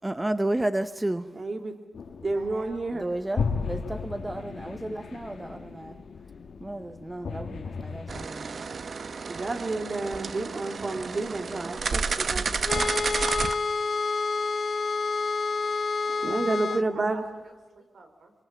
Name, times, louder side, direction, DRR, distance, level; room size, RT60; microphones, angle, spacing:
voice 1, 0.0-1.3 2.9-6.0 6.6-8.6, right 1 dB, 15° right, 0.7 m, -32 dB
voice 2, 1.3-1.7 2.2-3.0 9.3-12.9 16.2-17.2, right 2 dB, 35° right, 2.2 m, -30 dB
sound 1, 1.9-8.3, left 5 dB, 70° left, 1.8 m, -35 dB
voice 3, 2.2-3.0 16.0-16.4 16.6-18.3, right 3 dB, 75° right, 4.6 m, -49 dB
sound 2, 8.1-13.6, right 5 dB, 50° right, 1.0 m, -31 dB
sound 3, 12.7-16.9, left 4 dB, 45° left, 0.9 m, -28 dB
24.5 x 23.5 x 7.2 m
wide cardioid pair, 140°, 0 cm